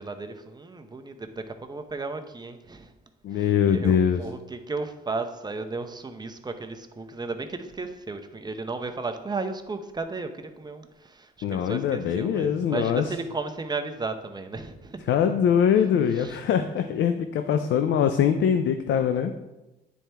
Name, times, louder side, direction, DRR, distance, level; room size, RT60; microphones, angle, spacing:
voice 1, 0.0-2.9 3.3-15.2 16.1-16.4, right 3 dB, 20° right, 7 dB, 0.7 m, -34 dB
voice 2, 3.2-4.2 11.4-13.0 15.1-19.3, left 8 dB, 70° left, 7 dB, 0.5 m, -23 dB
9.1 x 4.4 x 3.4 m, 1.0 s
cardioid pair, 90°, 20 cm